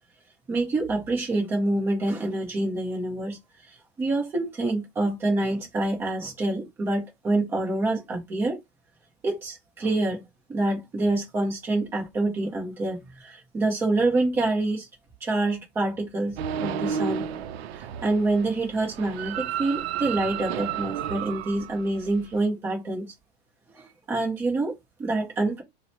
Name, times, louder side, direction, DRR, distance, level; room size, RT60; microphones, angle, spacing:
voice 1, 0.5-3.4 4.0-8.6 9.2-10.2 10.5-14.9 15.2-17.3 17.7-23.1 23.8-25.6, right 2 dB, 10° right, 0.5 m, -26 dB
sound 1, 16.4-22.4, right 8 dB, 85° right, 0.5 m, -32 dB
2.9 x 2.1 x 4.0 m
supercardioid pair, 180°, 30 cm